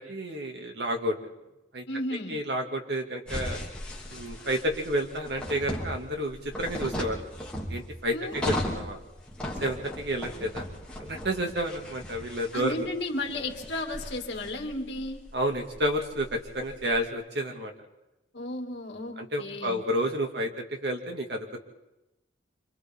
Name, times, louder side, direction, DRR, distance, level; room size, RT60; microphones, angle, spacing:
voice 1, 0.1-1.2 1.7-1.8 2.3-3.6 4.1-7.2 7.7-9.0 9.6-10.7 11.0-12.9 15.3-17.7 19.2-21.6, equal, 60° right, 3 dB, 2.4 m, -30 dB
voice 2, 1.9-2.4 8.1-8.4 12.5-15.2 18.3-19.8, left 1 dB, 65° left, 2 dB, 2.7 m, -34 dB
sound 1, 3.3-17.0, left 1 dB, 5° left, 2.8 m, -37 dB
26.5 x 26.5 x 3.8 m, 0.97 s
head